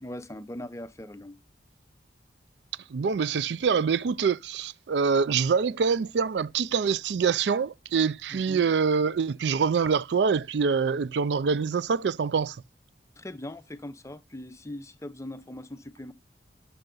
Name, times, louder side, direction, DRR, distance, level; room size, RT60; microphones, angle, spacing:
voice 1, 0.0-1.4 8.3-8.6 13.2-16.1, left 1 dB, 15° left, 0.6 m, -40 dB
voice 2, 2.9-12.6, right 5 dB, 75° right, 0.4 m, -25 dB
10.5 x 6.7 x 3.8 m
head